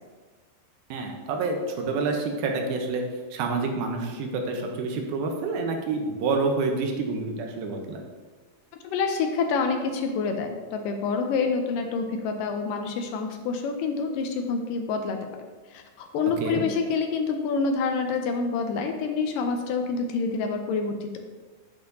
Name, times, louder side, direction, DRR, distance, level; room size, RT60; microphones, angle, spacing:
voice 1, 0.9-3.0 3.3-8.0 16.4-16.7, right 3 dB, 80° right, 3 dB, 2.6 m, -28 dB
voice 2, 8.8-15.3 15.7-21.2, left 4 dB, 80° left, 5 dB, 2.1 m, -27 dB
8.6 x 8.2 x 2.8 m, 1.4 s
omnidirectional pair, 4.3 m